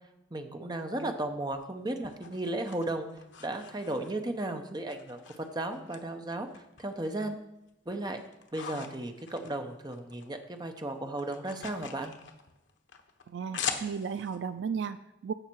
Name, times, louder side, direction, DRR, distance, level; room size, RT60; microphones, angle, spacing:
voice 1, 0.3-3.1 3.4-7.4 7.9-8.2 8.5-12.1, right 1 dB, 20° right, 5 dB, 0.8 m, -35 dB
sound 1, 1.5-4.4 4.9-6.0 6.3-7.3 7.7-10.3 10.6-14.4, left 7 dB, 75° left, 1.1 m, -42 dB
voice 2, 13.3-15.3, right 6 dB, 70° right, 12 dB, 0.4 m, -35 dB
15.5 x 5.7 x 4.6 m, 0.89 s
head